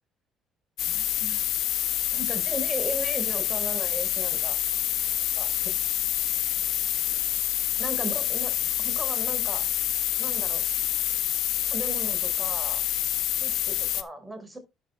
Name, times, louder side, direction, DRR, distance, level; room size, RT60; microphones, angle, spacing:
sound 1, 0.8-14.0, left 12 dB, 70° left, 1.2 m, -27 dB
voice 1, 0.9-1.5 2.1-4.6 5.4-5.7 7.8-8.5 8.8-9.7 10.2-10.7 11.7-12.8 13.4-14.6, right 1 dB, 10° right, 5.3 m, -36 dB
12.0 x 10.0 x 2.3 m
supercardioid pair, 75°, 0 cm